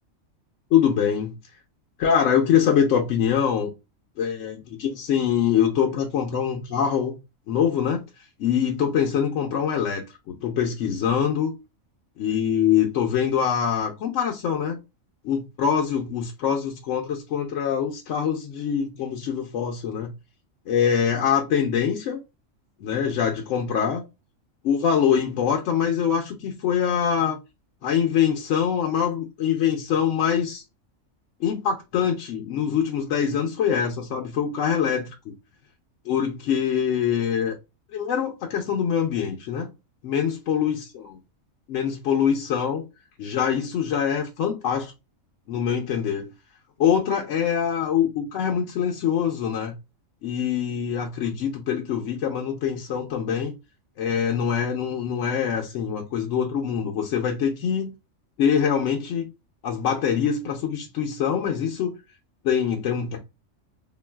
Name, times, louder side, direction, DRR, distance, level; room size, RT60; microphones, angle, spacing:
voice 1, 0.7-1.4 2.0-3.7 4.2-7.2 7.5-8.0 8.4-11.5 12.2-14.8 15.2-20.1 20.7-22.2 22.8-24.0 24.6-27.4 27.8-30.6 31.4-35.3 36.1-37.6 37.9-39.7 40.0-41.2 41.7-42.8 43.2-44.9 45.5-46.3 46.8-49.7 50.2-53.5 54.0-57.9 58.4-59.3 59.6-62.0 62.4-63.2, left 8 dB, 70° left, 0.9 m, -24 dB
3.7 x 2.3 x 2.2 m
omnidirectional pair, 1.4 m